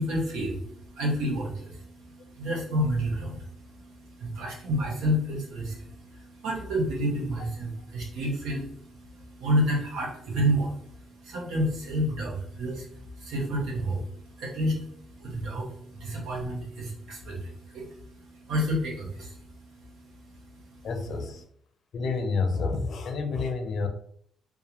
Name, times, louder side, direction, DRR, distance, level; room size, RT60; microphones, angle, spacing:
voice 1, 0.0-20.8, equal, 90° right, -3 dB, 0.9 m, -30 dB
voice 2, 20.8-21.4 21.9-23.9, left 4 dB, 65° left, 5 dB, 0.5 m, -29 dB
2.3 x 2.3 x 2.9 m, 0.64 s
cardioid pair, 90°, 0 cm